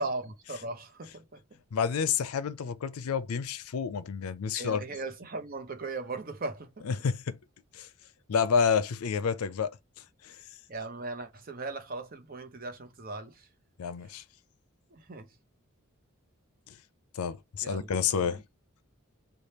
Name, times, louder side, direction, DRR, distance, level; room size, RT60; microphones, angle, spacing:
voice 1, 0.0-1.4 4.5-6.9 10.7-13.5 14.9-15.3 17.6-18.3, right 3 dB, 40° right, 0.7 m, -38 dB
voice 2, 1.7-4.8 6.8-7.4 7.7-7.9 8.3-9.7 10.2-10.4 13.8-14.2 16.7-16.8 17.1-18.4, left 6 dB, 85° left, 0.4 m, -29 dB
3.3 x 2.3 x 4.2 m
head